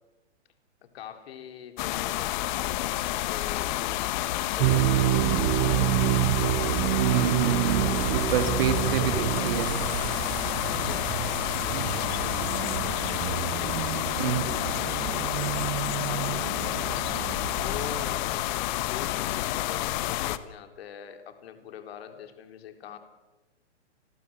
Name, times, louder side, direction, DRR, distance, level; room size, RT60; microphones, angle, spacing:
voice 1, 0.8-6.9 7.8-8.2 8.9-9.6 10.6-11.2 11.5-15.6 16.0-17.1 17.5-23.0, left 9 dB, 55° left, 6 dB, 3.9 m, -44 dB
sound 1, 1.8-20.4, left 15 dB, 40° left, 1.6 m, -29 dB
sound 2, 4.6-18.2, right 16 dB, 35° right, 1.4 m, -29 dB
voice 2, 7.0-9.7 11.7-12.0 14.2-14.4, right 9 dB, 55° right, 8 dB, 3.2 m, -28 dB
30.0 x 21.0 x 7.9 m, 1.1 s
hypercardioid pair, 130°, 36 cm